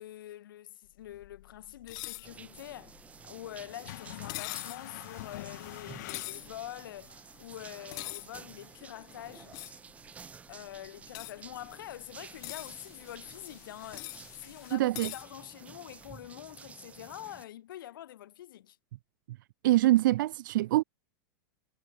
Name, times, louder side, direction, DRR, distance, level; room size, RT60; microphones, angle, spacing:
voice 1, 0.0-9.6 10.5-18.8, left 13 dB, 80° left, 2.2 m, -45 dB
sound 1, 0.8-14.8, left 19 dB, 55° left, 1.4 m, -51 dB
sound 2, 1.9-2.3 4.3-4.8 6.1-6.5 7.9-8.3 9.5-9.8 11.1-11.3 12.2-12.7 13.9-14.2 14.9-15.2, left 25 dB, 35° left, 0.7 m, -40 dB
sound 3, 2.2-17.5, right 6 dB, 10° right, 0.5 m, -52 dB
voice 2, 14.7-15.1 19.6-20.8, right 16 dB, 70° right, 0.4 m, -24 dB
supercardioid pair, 160°, 11 cm